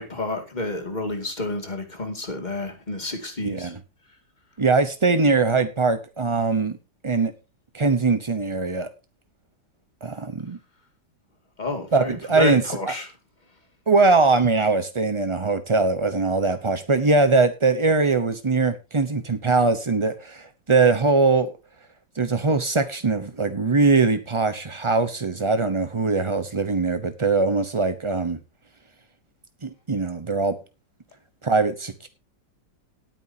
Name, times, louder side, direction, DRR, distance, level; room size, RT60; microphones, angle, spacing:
voice 1, 0.0-3.7 11.6-13.1, left 2 dB, 25° left, 2.3 m, -30 dB
voice 2, 3.4-3.8 4.6-6.8 7.0-7.3 7.7-8.9 10.0-10.6 11.9-12.8 13.9-21.5 22.2-28.4 29.6-30.5 31.4-32.1, right 3 dB, 35° right, 0.4 m, -21 dB
18.5 x 9.1 x 2.8 m
omnidirectional pair, 2.0 m